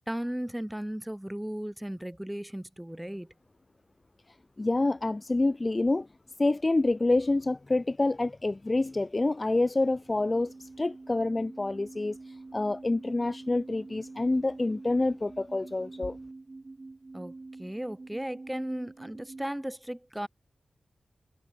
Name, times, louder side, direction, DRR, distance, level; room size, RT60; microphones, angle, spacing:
voice 1, 0.0-3.3 17.1-17.3 17.6-20.3, right 1 dB, 5° right, 3.3 m, -36 dB
voice 2, 4.6-6.1 6.4-16.2, left 2 dB, 25° left, 0.8 m, -27 dB
sound 1, 9.9-19.5, right 3 dB, 30° right, 1.9 m, -46 dB
wide cardioid pair, 155°, 0 cm